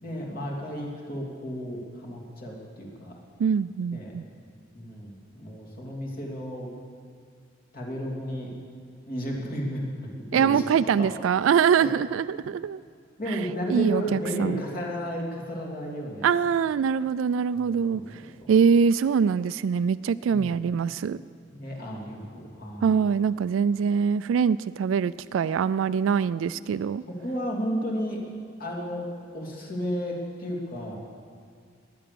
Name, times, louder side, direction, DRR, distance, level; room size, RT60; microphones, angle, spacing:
voice 1, 0.0-3.2 3.9-4.1 4.7-6.7 7.7-8.5 9.1-9.9 10.3-10.6 11.0-11.2 11.8-11.9 13.2-16.4 17.5-17.6 17.9-18.3 20.3-20.5 21.5-23.0 27.1-28.2 28.6-29.1 29.3-31.0, equal, 50° left, -2 dB, 3.1 m, -33 dB
voice 2, 3.4-4.2 10.3-12.8 13.3-13.4 13.7-14.6 16.2-18.2 18.5-21.2 22.8-27.0, right 6 dB, 90° right, 15 dB, 0.3 m, -23 dB
18.5 x 10.0 x 6.9 m, 2.1 s
head